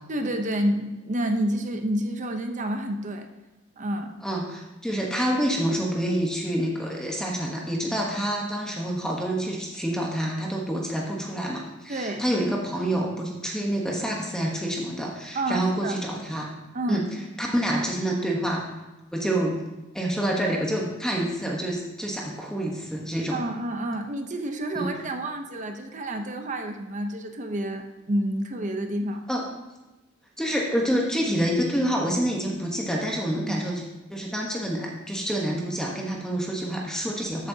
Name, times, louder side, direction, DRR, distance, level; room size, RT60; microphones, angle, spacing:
voice 1, 0.1-3.3 3.8-4.1 11.9-12.2 15.3-16.0 16.7-17.0 23.3-29.2 33.4-33.6, right 1 dB, 40° right, 5 dB, 0.8 m, -29 dB
voice 2, 4.2-16.5 16.9-17.1 17.4-18.6 19.1-19.6 19.9-23.4 24.7-24.9 29.3-29.4 30.4-33.8 34.1-37.5, right 1 dB, 5° left, -1 dB, 1.1 m, -27 dB
13.0 x 8.2 x 2.8 m, 1.0 s
head